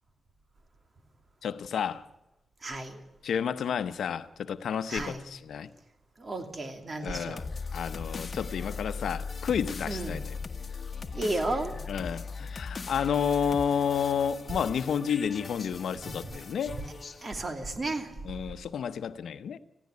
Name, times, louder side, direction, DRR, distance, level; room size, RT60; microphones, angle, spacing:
voice 1, 1.4-2.0 3.2-5.7 7.0-7.5 7.7-10.4 11.9-16.8 18.2-19.6, left 7 dB, 85° left, 0.8 m, -31 dB
voice 2, 2.6-3.0 4.9-5.2 6.2-7.5 9.8-10.2 11.1-11.8 16.1-16.4 16.7-16.8 17.2-18.1, right 2 dB, 45° right, 2.9 m, -33 dB
sound 1, 7.4-17.4, left 4 dB, 45° left, 1.5 m, -39 dB
19.0 x 15.5 x 9.5 m
cardioid pair, 65°, 0 cm